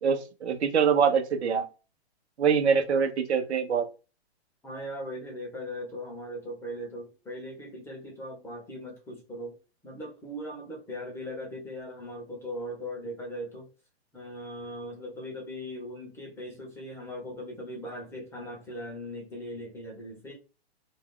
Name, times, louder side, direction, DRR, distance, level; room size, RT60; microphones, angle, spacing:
voice 1, 0.0-1.7 2.4-3.9, right 6 dB, 85° right, 0.9 m, -24 dB
voice 2, 4.6-13.7 14.1-20.3, equal, 10° left, 0.9 m, -39 dB
2.7 x 2.3 x 3.7 m
hypercardioid pair, 140°, 32 cm